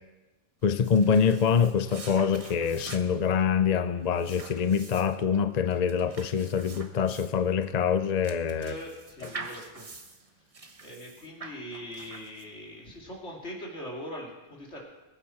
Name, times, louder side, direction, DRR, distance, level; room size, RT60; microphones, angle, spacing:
voice 1, 0.6-8.7, left 7 dB, 45° left, 11 dB, 0.5 m, -25 dB
sound 1, 0.6-12.7, right 3 dB, 30° right, 1.1 m, -46 dB
voice 2, 8.6-9.9 10.4-10.5 10.8-14.8, equal, 65° left, -2 dB, 3.2 m, -41 dB
21.5 x 9.1 x 4.5 m, 1.1 s
omnidirectional pair, 1.3 m